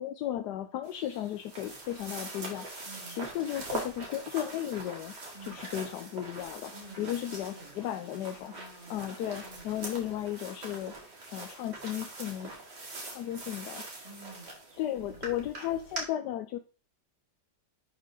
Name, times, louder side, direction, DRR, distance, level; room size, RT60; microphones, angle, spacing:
voice 1, 0.0-5.1 5.4-8.5 8.9-10.9 11.3-12.5 13.0-13.8 14.8-16.6, left 12 dB, 75° left, 7 dB, 1.2 m, -35 dB
sound 1, 0.8-16.0, right 2 dB, 80° right, 2.8 m, -43 dB
voice 2, 2.9-3.2 5.3-5.6 6.7-9.1 9.4-9.7 14.0-15.2, right 2 dB, 35° left, -3 dB, 3.0 m, -51 dB
10.5 x 4.4 x 3.7 m, 0.37 s
omnidirectional pair, 1.8 m